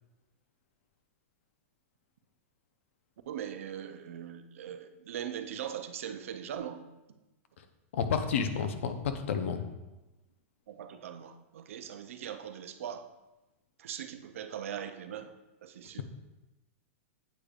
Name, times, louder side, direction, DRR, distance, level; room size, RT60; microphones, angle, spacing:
voice 1, 3.3-6.8 10.7-13.1 13.8-16.0, right 9 dB, 70° right, 9 dB, 0.5 m, -40 dB
voice 2, 7.9-9.7, left 6 dB, 60° left, 8 dB, 0.6 m, -30 dB
8.4 x 5.1 x 2.4 m, 1.0 s
supercardioid pair, 175°, 8 cm